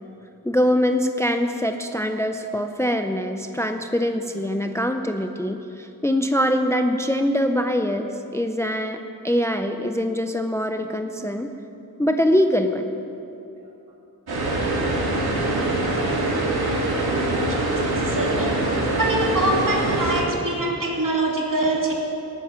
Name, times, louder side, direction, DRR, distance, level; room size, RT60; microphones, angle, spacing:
voice 1, 0.4-11.5 12.0-12.9, equal, 10° left, 6 dB, 0.5 m, -23 dB
sound 1, 14.3-20.2, right 2 dB, 85° right, 2.6 m, -23 dB
voice 2, 17.9-18.6 19.0-21.9, right 2 dB, 60° right, -2 dB, 2.7 m, -24 dB
19.0 x 9.2 x 6.0 m, 2.8 s
wide cardioid pair, 125°, 37 cm